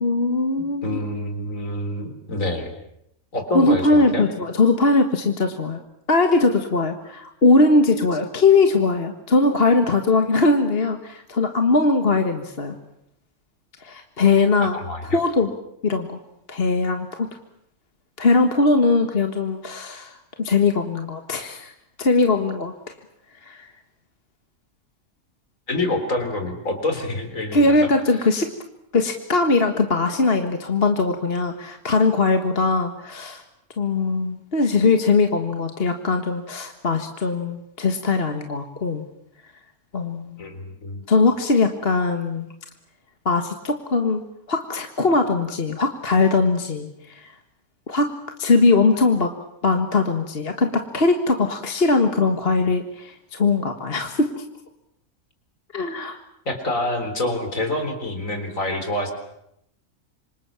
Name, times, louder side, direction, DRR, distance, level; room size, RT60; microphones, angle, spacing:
voice 1, 0.0-1.0 3.5-5.8 6.1-12.8 13.8-14.8 15.1-15.5 15.8-16.2 16.5-17.3 18.2-21.7 22.0-22.7 23.4-23.7 27.5-28.5 28.9-33.4 33.8-39.0 39.9-40.4 41.1-42.5 43.3-44.2 44.5-47.3 47.9-49.3 49.6-54.4 55.7-56.2, left 3 dB, 40° left, 6 dB, 1.8 m, -20 dB
voice 2, 0.8-2.7 3.3-4.3 14.7-15.2 25.7-28.2 40.4-41.0 56.5-59.1, left 1 dB, 60° left, 7 dB, 4.3 m, -27 dB
27.0 x 25.5 x 7.4 m, 0.79 s
omnidirectional pair, 1.5 m